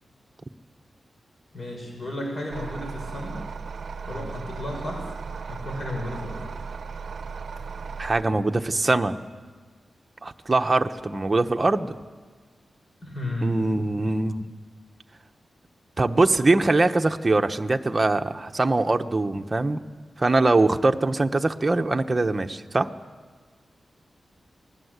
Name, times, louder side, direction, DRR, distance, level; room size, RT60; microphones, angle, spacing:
voice 1, 1.5-3.4 4.1-5.1 5.5-6.5 13.0-13.6, left 1 dB, 45° left, 1 dB, 6.0 m, -33 dB
sound 1, 2.5-8.2, right 5 dB, 65° right, 0.7 m, -36 dB
voice 2, 8.0-9.2 10.2-12.0 13.4-14.5 16.0-19.8 20.2-22.9, right 2 dB, 25° right, 6 dB, 1.1 m, -22 dB
28.5 x 20.0 x 8.2 m, 1.5 s
wide cardioid pair, 125°, 0 cm